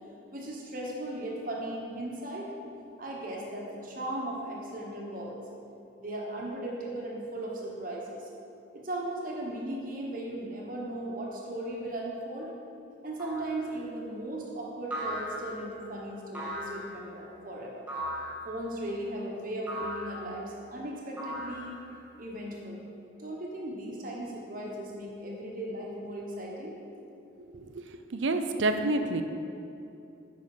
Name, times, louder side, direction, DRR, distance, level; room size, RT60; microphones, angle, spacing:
voice 1, 0.3-2.5 3.0-5.4 6.0-8.3 8.7-12.5 13.0-17.8 18.4-21.8 22.2-22.8 23.2-26.8, right 1 dB, 45° right, -2 dB, 1.2 m, -37 dB
sound 1, 13.2-13.6 14.9-15.7 16.3-16.9 17.9-18.4 19.7-20.2 21.2-21.9, equal, 5° right, 2.0 m, -37 dB
voice 2, 27.5-27.9 28.1-29.2, right 2 dB, 75° right, 7 dB, 0.6 m, -28 dB
9.4 x 5.5 x 4.9 m, 2.8 s
head